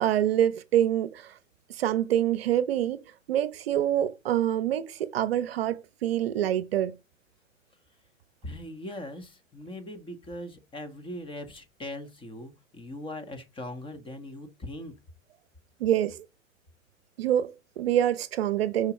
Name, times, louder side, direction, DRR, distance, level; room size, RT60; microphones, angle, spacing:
voice 1, 0.0-1.3 1.7-3.0 3.3-7.0 15.8-16.2 17.2-18.9, right 11 dB, 50° right, 0.9 m, -26 dB
voice 2, 8.4-15.0, left 1 dB, 15° left, 1.3 m, -40 dB
7.0 x 5.2 x 4.0 m
figure-of-eight pair, 110°, 40 cm